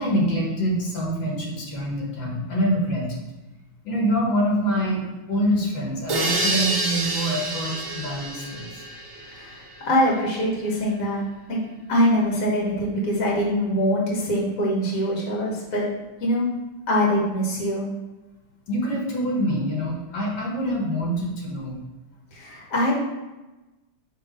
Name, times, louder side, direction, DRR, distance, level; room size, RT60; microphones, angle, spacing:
voice 1, 0.0-3.2 3.8-8.7 18.7-21.8, equal, 85° left, -2 dB, 2.0 m, -25 dB
sound 1, 6.1-9.8, right 2 dB, 45° right, 1.5 m, -28 dB
voice 2, 9.3-11.2 11.5-11.6 11.9-15.9 16.2-16.5 16.9-17.8 22.3-22.9, equal, 45° left, -3 dB, 1.8 m, -23 dB
5.4 x 3.6 x 5.2 m, 1.1 s
omnidirectional pair, 2.0 m